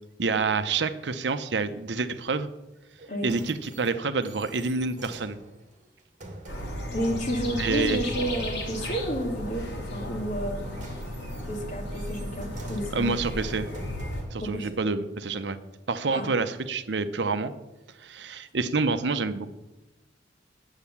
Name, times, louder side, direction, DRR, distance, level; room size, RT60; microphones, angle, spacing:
voice 1, 0.2-2.5 3.2-5.4 7.6-8.0 12.9-13.7 14.3-15.6 15.9-17.5 18.0-19.5, right 4 dB, 70° right, 11 dB, 0.7 m, -28 dB
sound 1, 2.9-7.0 10.3-14.5 15.2-15.3, right 1 dB, 45° right, 2.0 m, -47 dB
sound 2, 6.5-14.2, left 1 dB, 70° left, 2.9 m, -34 dB
voice 2, 6.9-10.6 11.5-13.1 14.4-14.8 16.1-16.3, equal, 45° left, 2 dB, 2.2 m, -31 dB
10.0 x 8.1 x 7.1 m, 1.0 s
head